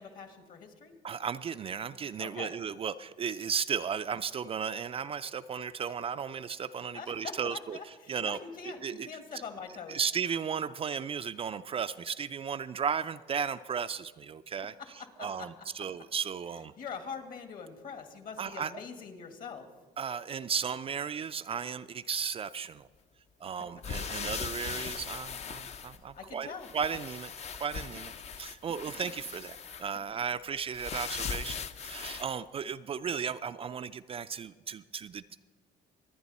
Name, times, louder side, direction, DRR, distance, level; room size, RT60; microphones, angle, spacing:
voice 1, 0.0-0.9 2.2-2.5 6.9-10.0 14.8-15.5 16.8-19.7 26.0-26.7, left 6 dB, 55° left, 6 dB, 2.0 m, -43 dB
voice 2, 1.0-7.8 8.1-8.4 8.6-9.1 9.3-9.4 9.9-14.7 15.2-16.7 18.4-18.7 20.0-22.9 23.4-27.3 27.6-35.4, right 7 dB, 35° right, 11 dB, 0.4 m, -35 dB
sound 1, 23.8-26.3 26.6-29.9 30.7-32.2, left 6 dB, 40° left, 0.6 m, -39 dB
25.0 x 9.7 x 4.2 m, 1.4 s
cardioid pair, 110°, 17 cm